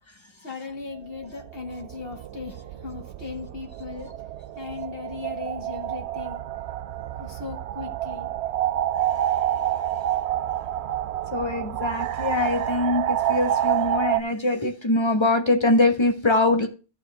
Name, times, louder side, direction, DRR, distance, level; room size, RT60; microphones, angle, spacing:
voice 1, 0.4-4.3 4.6-6.6 7.2-8.3, left 4 dB, 55° left, 2.1 m, -38 dB
sound 1, 1.0-14.2, right 11 dB, 70° right, 0.8 m, -28 dB
voice 2, 11.3-16.7, left 2 dB, 25° left, 1.4 m, -23 dB
14.5 x 4.8 x 3.4 m
omnidirectional pair, 1.2 m